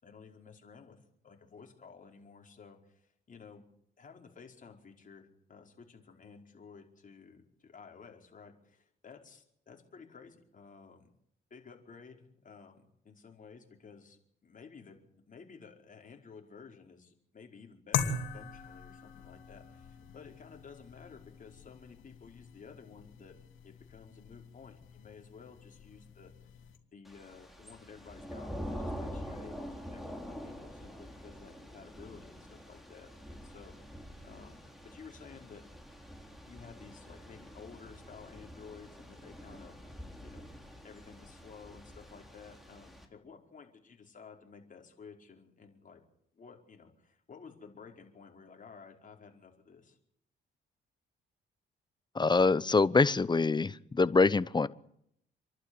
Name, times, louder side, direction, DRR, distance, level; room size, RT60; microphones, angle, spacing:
voice 1, 0.0-1.0 1.2-3.6 4.0-11.1 11.5-23.3 23.6-26.6 26.9-35.6 36.4-40.5 40.8-46.0 46.3-50.0, left 5 dB, 40° left, 2 dB, 4.9 m, -53 dB
sound 1, 17.9-26.8, left 6 dB, 85° left, 2.7 m, -41 dB
Thunder / Rain, 27.0-43.1, equal, ahead, 4.1 m, -46 dB
voice 2, 52.1-54.7, left 4 dB, 20° left, 17 dB, 0.9 m, -25 dB
28.0 x 12.0 x 9.8 m, 0.73 s
cardioid pair, 90°, 20 cm